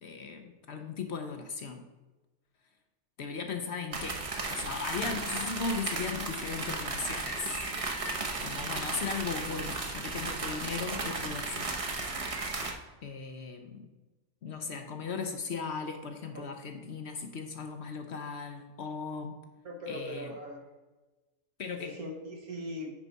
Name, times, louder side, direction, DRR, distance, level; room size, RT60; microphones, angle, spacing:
voice 1, 0.0-1.8 3.2-4.2 4.5-7.6 8.4-11.7 13.0-13.9 14.4-19.4 19.9-20.3 21.6-22.0, left 5 dB, 60° left, 6 dB, 0.8 m, -37 dB
sound 1, 3.9-12.7, right 3 dB, 30° right, 0.7 m, -35 dB
voice 2, 19.7-20.7 21.8-22.9, left 1 dB, 80° right, 1 dB, 1.8 m, -40 dB
9.6 x 4.7 x 4.0 m, 1.2 s
omnidirectional pair, 1.5 m